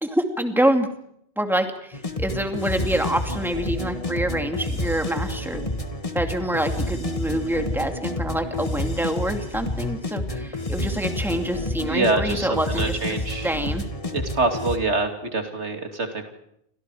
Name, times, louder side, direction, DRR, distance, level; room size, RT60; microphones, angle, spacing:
voice 1, 0.0-0.9 1.4-5.6 6.1-13.8, right 1 dB, ahead, 5 dB, 2.4 m, -26 dB
sound 1, 1.9-14.8, left 1 dB, 30° left, 1.8 m, -29 dB
voice 2, 11.8-13.5 14.1-16.3, right 3 dB, 90° right, 5 dB, 3.1 m, -25 dB
30.0 x 25.5 x 5.0 m, 0.74 s
omnidirectional pair, 1.1 m